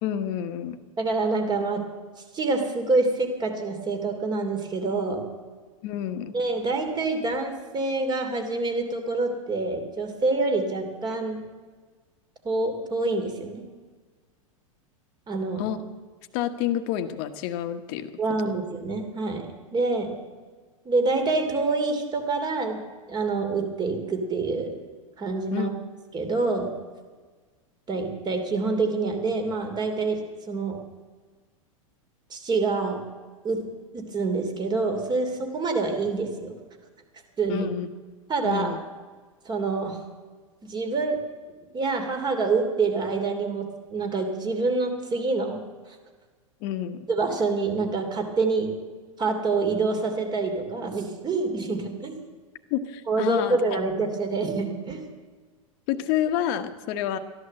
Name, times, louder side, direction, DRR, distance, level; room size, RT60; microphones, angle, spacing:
voice 1, 0.0-0.8 5.8-6.3 15.6-15.8 16.3-18.1 25.5-25.7 37.5-37.9 38.4-38.8 46.6-47.1 52.7-53.8 55.9-57.2, left 10 dB, 50° left, 9 dB, 1.3 m, -28 dB
voice 2, 1.0-1.8 2.3-5.3 6.3-11.4 12.4-13.6 15.3-15.6 18.2-19.4 19.7-20.1 20.8-22.8 23.1-24.7 25.2-25.7 26.1-26.7 27.9-30.8 32.3-33.0 33.4-33.6 33.9-36.5 37.4-37.7 38.3-38.8 39.4-40.0 40.6-41.2 41.7-45.6 47.1-48.7 49.2-52.2 53.1-55.0, right 3 dB, 25° right, 5 dB, 2.9 m, -26 dB
14.0 x 11.5 x 7.7 m, 1.4 s
hypercardioid pair, 115°, 18 cm